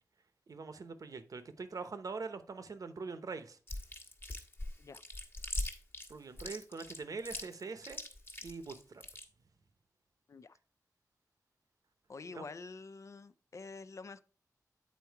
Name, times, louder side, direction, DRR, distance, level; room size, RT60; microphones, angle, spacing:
voice 1, 0.5-3.6 6.1-8.0 8.4-9.0 12.3-12.4, right 4 dB, 65° right, 0.9 m, -43 dB
Chewing mastication, 3.7-9.2, left 1 dB, 35° left, 1.3 m, -41 dB
voice 2, 12.1-14.2, left 4 dB, 50° left, 0.4 m, -47 dB
8.4 x 4.4 x 4.6 m
wide cardioid pair, 125°, 6 cm